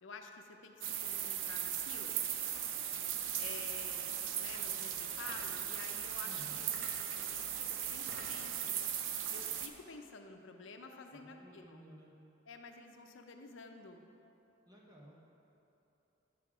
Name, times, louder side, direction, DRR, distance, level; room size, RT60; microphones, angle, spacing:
voice 1, 0.0-2.2 3.3-11.8 12.4-14.0, left 4 dB, 80° left, 4 dB, 0.7 m, -51 dB
sound 1, 0.8-9.7, right 9 dB, 85° right, 0.6 m, -38 dB
sound 2, 5.3-5.6 6.7-7.2 7.8-8.5, right 1 dB, 65° right, 1.2 m, -51 dB
voice 2, 6.2-6.6 11.1-12.1 14.6-15.2, right 1 dB, 20° right, -3 dB, 1.3 m, -55 dB
9.1 x 6.8 x 5.0 m, 2.9 s
head